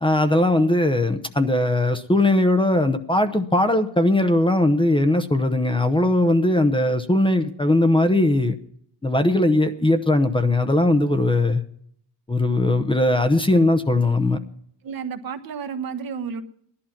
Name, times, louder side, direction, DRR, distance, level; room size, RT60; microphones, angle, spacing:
voice 1, 0.0-8.5 9.0-11.6 12.3-14.4, left 1 dB, 10° left, 9 dB, 0.8 m, -19 dB
voice 2, 14.8-16.4, right 6 dB, 55° right, 7 dB, 1.2 m, -31 dB
16.0 x 11.5 x 5.9 m, 0.68 s
cardioid pair, 120°, 42 cm